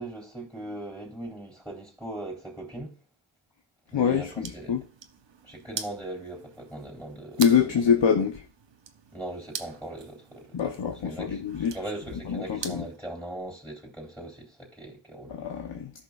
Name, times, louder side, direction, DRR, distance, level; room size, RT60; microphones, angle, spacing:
voice 1, 0.0-3.0 3.9-4.7 5.4-8.0 9.1-10.8 11.0-11.4 11.7-15.4, right 1 dB, ahead, 3.5 m, -39 dB
voice 2, 3.9-4.8 7.4-8.4 10.5-11.7 12.3-12.8 15.3-15.9, left 7 dB, 80° left, 1.0 m, -25 dB
sound 1, 4.1-13.0, right 7 dB, 80° right, 0.9 m, -43 dB
14.0 x 5.6 x 2.4 m
cardioid pair, 50°, 44 cm